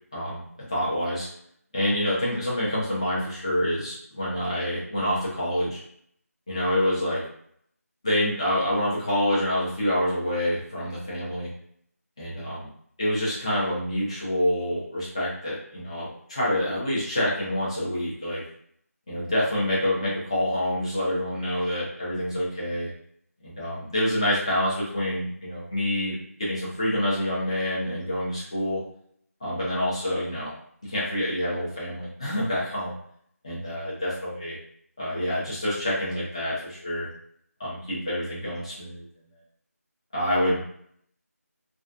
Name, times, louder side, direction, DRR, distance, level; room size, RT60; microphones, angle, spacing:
voice 1, 0.1-0.4 0.7-1.3 1.7-5.8 6.5-7.2 8.0-11.5 12.2-12.7 13.0-18.4 19.1-22.9 23.4-28.8 29.4-30.5 30.8-32.9 33.4-34.6 35.0-37.1 37.6-39.1 40.1-40.6, left 1 dB, 20° left, -7 dB, 0.7 m, -27 dB
2.3 x 2.3 x 2.4 m, 0.66 s
figure-of-eight pair, 170°, 9 cm